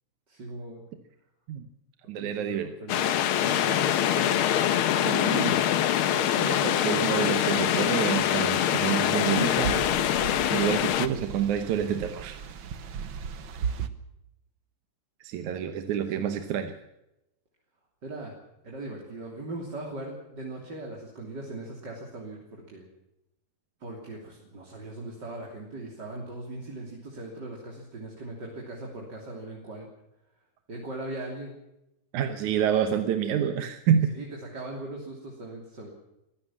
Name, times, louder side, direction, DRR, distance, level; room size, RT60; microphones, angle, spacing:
voice 1, 0.3-0.8 2.1-4.8 5.5-5.6 16.1-16.4 18.0-18.3 18.6-22.9 23.8-29.9 30.7-31.5 34.1-34.3 34.5-35.9, right 2 dB, 35° right, -1 dB, 3.6 m, -39 dB
voice 2, 2.1-2.7 5.0-5.6 6.1-9.8 10.5-12.4 15.2-16.8 32.1-34.1, right 9 dB, 80° right, 7 dB, 2.5 m, -28 dB
sound 1, 2.9-11.1, left 11 dB, 70° left, 1.3 m, -24 dB
sound 2, 9.2-13.9, right 7 dB, 55° right, 1.5 m, -36 dB
23.5 x 16.0 x 7.3 m, 0.91 s
omnidirectional pair, 3.4 m